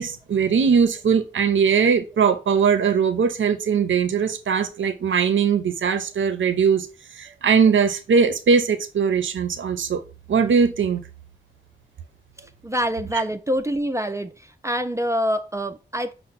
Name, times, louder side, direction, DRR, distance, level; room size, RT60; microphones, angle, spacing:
voice 1, 0.0-6.9 7.1-10.0 10.3-11.0 13.1-13.2, right 6 dB, 80° right, 0.5 m, -20 dB
voice 2, 12.6-14.3 14.6-16.1, equal, 15° right, 0.4 m, -25 dB
5.4 x 2.0 x 3.9 m
wide cardioid pair, 70°, 20 cm